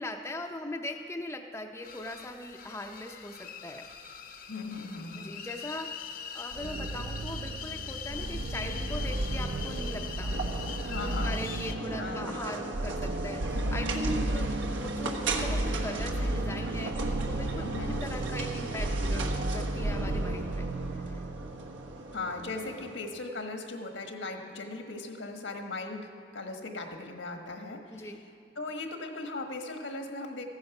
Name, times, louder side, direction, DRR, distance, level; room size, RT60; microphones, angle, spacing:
voice 1, 0.0-3.9 5.2-10.3 10.9-20.7 20.9-21.2 27.9-28.2, left 1 dB, 15° left, 3 dB, 0.6 m, -40 dB
sound 1, 1.8-11.7, left 7 dB, 45° left, 0.8 m, -42 dB
voice 2, 4.5-5.4 10.9-11.4 12.0-12.4 17.5-18.0 22.1-28.1 28.5-30.4, left 3 dB, 75° left, 4 dB, 1.4 m, -38 dB
sound 2, 6.5-22.2, right 1 dB, 65° right, 0.6 m, -33 dB
sound 3, 10.3-23.0, right 2 dB, 80° right, 1.3 m, -37 dB
15.0 x 9.5 x 6.0 m, 2.6 s
head